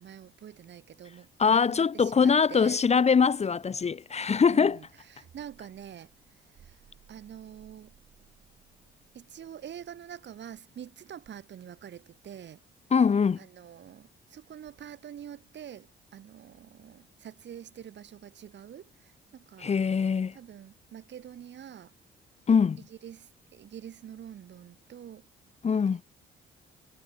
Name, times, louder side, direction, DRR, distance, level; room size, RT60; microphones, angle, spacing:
voice 1, 0.0-2.8 4.5-6.8 7.1-7.9 9.1-12.6 13.4-19.7 20.3-21.9 22.8-25.3 25.7-25.8, right 9 dB, 65° right, 6.9 m, -46 dB
voice 2, 1.4-4.8 12.9-13.4 19.6-20.3 22.5-22.8 25.6-26.0, left 6 dB, 35° left, 0.9 m, -23 dB
cardioid pair, 90°, 20 cm